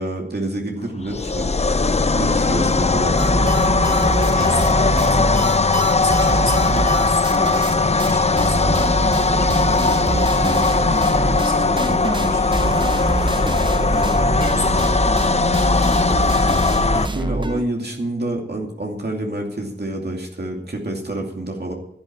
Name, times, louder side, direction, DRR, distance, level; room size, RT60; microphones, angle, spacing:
voice 1, 0.0-1.5 1.8-3.5 17.1-21.7, right 1 dB, 65° right, 0 dB, 2.5 m, -28 dB
sound 1, 1.1-17.1, left 3 dB, 35° left, 0.5 m, -19 dB
voice 2, 2.1-2.5 4.2-8.9 9.3-12.9 13.6-16.1, left 1 dB, 60° left, 0 dB, 4.4 m, -31 dB
sound 2, 3.2-7.7 8.0-8.1 8.4-17.6, right 2 dB, 25° right, 0.9 m, -24 dB
12.0 x 10.5 x 7.3 m, 0.73 s
wide cardioid pair, 70°, 18 cm